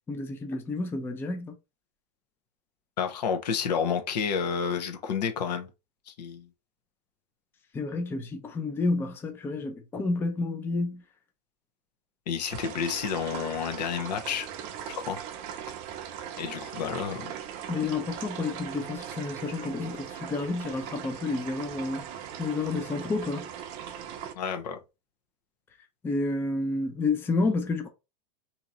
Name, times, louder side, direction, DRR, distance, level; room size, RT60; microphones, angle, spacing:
voice 1, 0.1-1.6 7.7-11.0 17.7-22.0 22.4-23.5 26.0-27.9, left 3 dB, 10° left, 0.5 m, -30 dB
voice 2, 3.0-5.7 6.1-6.5 12.3-14.5 14.9-15.2 16.4-17.3 24.3-24.8, left 7 dB, 75° left, 1.0 m, -30 dB
sound 1, 12.5-24.3, right 9 dB, 40° right, 0.6 m, -40 dB
2.9 x 2.9 x 3.7 m
supercardioid pair, 145°, 21 cm